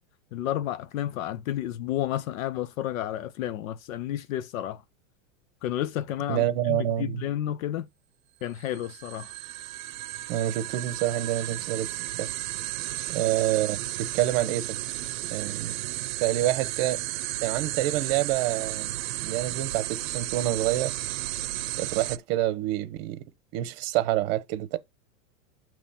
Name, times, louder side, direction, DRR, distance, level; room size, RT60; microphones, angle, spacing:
voice 1, 0.3-4.8 5.6-7.9 8.4-9.3, left 12 dB, 80° left, 0.7 m, -31 dB
voice 2, 6.3-7.2 10.3-11.9 12.2-12.3 13.1-14.8 15.3-15.7 16.2-17.0 17.4-18.9 19.2-20.9 21.8-23.2 23.5-24.8, right 14 dB, 45° right, 0.9 m, -27 dB
sound 1, 8.6-22.2, right 16 dB, 80° right, 0.7 m, -33 dB
7.0 x 3.0 x 5.6 m
supercardioid pair, 155°, 40 cm